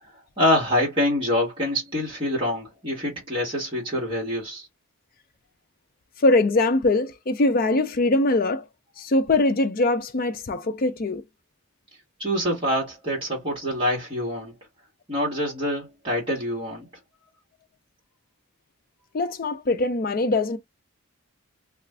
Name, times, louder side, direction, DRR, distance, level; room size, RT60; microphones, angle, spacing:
voice 1, 0.4-4.7 12.2-14.5 15.1-16.9, left 1 dB, 20° right, 1.3 m, -25 dB
voice 2, 6.2-8.7 9.0-11.2 19.1-20.6, left 2 dB, 40° left, 0.4 m, -22 dB
2.5 x 2.4 x 3.2 m
head